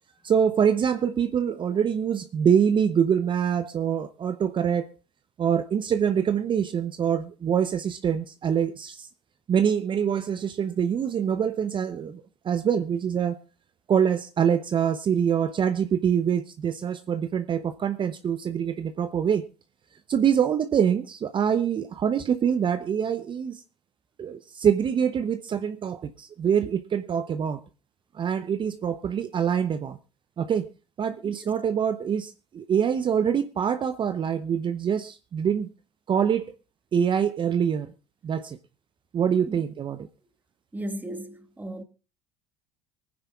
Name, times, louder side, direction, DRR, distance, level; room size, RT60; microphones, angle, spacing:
voice 1, 0.2-4.9 5.4-9.1 9.5-13.4 13.9-19.4 20.1-23.6 24.2-27.6 28.1-30.0 30.4-30.7 31.0-35.7 36.1-36.5 36.9-37.9 38.2-38.6 39.1-40.1, right 8 dB, 35° right, 0.7 m, -25 dB
voice 2, 40.7-41.8, right 1 dB, 10° right, 1.6 m, -36 dB
24.5 x 9.7 x 2.3 m
hypercardioid pair, 70°, 15 cm